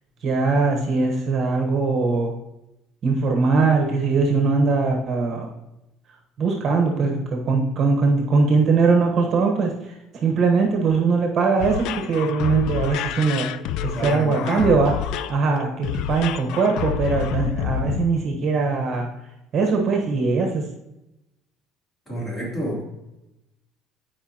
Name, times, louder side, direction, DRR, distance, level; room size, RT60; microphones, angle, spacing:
voice 1, 0.2-2.3 3.0-5.5 6.4-13.5 13.8-14.9 15.3-19.1 19.5-20.6, right 4 dB, 40° right, 2 dB, 1.1 m, -21 dB
sound 1, 11.6-18.0, left 10 dB, 65° left, 0.3 m, -28 dB
voice 2, 13.9-14.7 22.1-22.8, equal, 20° left, -4 dB, 3.0 m, -29 dB
11.0 x 5.0 x 2.9 m, 0.91 s
cardioid pair, 135°, 0 cm